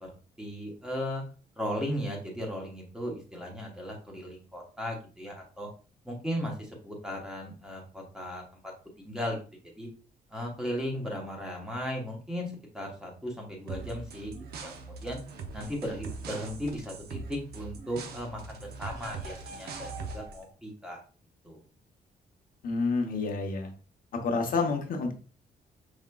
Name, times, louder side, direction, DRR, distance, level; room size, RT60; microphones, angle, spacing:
voice 1, 0.4-1.2 1.6-5.7 6.0-8.7 9.0-9.4 9.8-9.9 10.3-15.2 15.5-21.0 21.4-21.6, equal, 5° right, 0 dB, 1.0 m, -36 dB
sound 1, 13.7-20.4, right 4 dB, 75° right, 0.6 m, -41 dB
voice 2, 22.6-23.7 24.2-25.1, left 4 dB, 60° left, 3 dB, 0.8 m, -28 dB
4.9 x 3.5 x 2.2 m, 0.38 s
wide cardioid pair, 165°, 17 cm